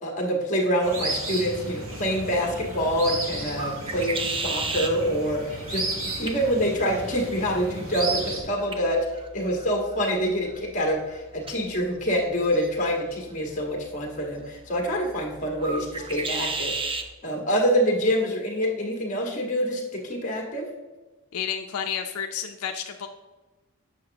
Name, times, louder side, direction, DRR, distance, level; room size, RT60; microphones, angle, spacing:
voice 1, 0.0-5.8 6.2-9.0 9.3-16.8 17.2-20.7, equal, 35° left, 0 dB, 1.5 m, -26 dB
sound 1, 0.8-8.4, right 2 dB, 70° right, 1.6 m, -33 dB
sound 2, 1.8-17.1, right 3 dB, 25° right, 0.4 m, -37 dB
voice 2, 21.3-23.1, left 8 dB, 85° left, 5 dB, 0.5 m, -31 dB
7.6 x 6.2 x 2.9 m, 1.1 s
head